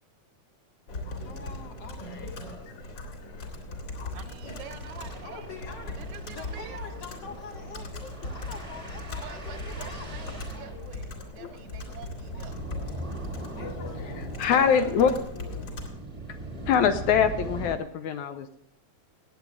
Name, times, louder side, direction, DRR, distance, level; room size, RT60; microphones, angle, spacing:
Computer keyboard, 0.9-15.9, left 2 dB, 35° left, 2.7 m, -39 dB
voice 1, 1.1-2.5 3.7-3.8 5.2-6.0 6.3-10.1 13.6-14.2, left 5 dB, 55° left, 3 dB, 2.2 m, -45 dB
sound 1, 1.1-1.2 1.5-1.6 1.9-2.1 2.4-2.6 3.9-17.8, right 2 dB, 20° right, 0.9 m, -41 dB
voice 2, 4.1-5.5 6.0-6.9 9.2-11.1 11.4-12.6, right 8 dB, 75° right, 10 dB, 2.0 m, -46 dB
voice 3, 13.6-15.2 16.7-18.6, left 7 dB, 80° left, 9 dB, 1.9 m, -25 dB
18.5 x 8.3 x 3.6 m, 0.72 s
omnidirectional pair, 3.6 m